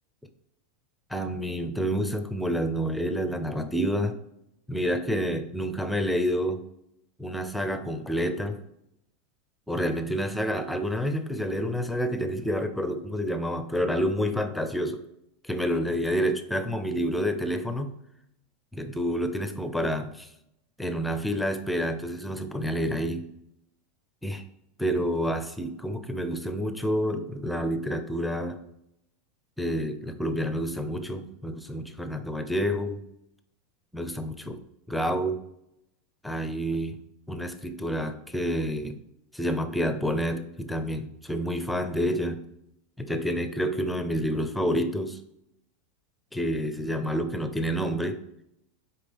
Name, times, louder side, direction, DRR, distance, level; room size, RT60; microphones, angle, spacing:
voice 1, 1.1-4.1 4.7-6.6 7.2-8.6 9.7-15.0 15.4-17.9 18.7-20.3 20.8-23.3 24.2-24.4 24.8-28.6 29.6-33.0 33.9-34.6 34.9-35.4 36.2-37.0 37.3-39.0 39.3-42.4 43.0-45.2 46.3-48.2, equal, 5° left, 8 dB, 0.7 m, -28 dB
6.6 x 4.7 x 3.5 m, 0.82 s
supercardioid pair, 125°, 0 cm